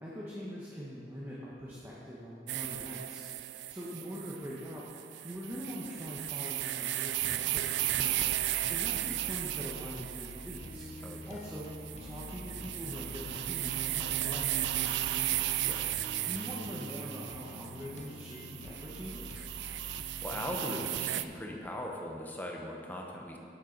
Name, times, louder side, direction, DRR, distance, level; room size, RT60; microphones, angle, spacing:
voice 1, 0.0-3.2 3.7-4.9 5.2-8.4 8.7-10.9 11.3-11.7 12.0-15.5 16.2-19.4, equal, 15° right, -7 dB, 1.1 m, -43 dB
sound 1, 2.5-21.3, right 14 dB, 80° right, 0.3 m, -35 dB
sound 2, 7.2-20.4, left 2 dB, 40° left, 0.5 m, -47 dB
voice 2, 11.0-11.3 15.6-15.9 20.2-23.4, left 1 dB, 10° left, 0 dB, 0.9 m, -39 dB
9.8 x 6.6 x 5.1 m, 2.5 s
head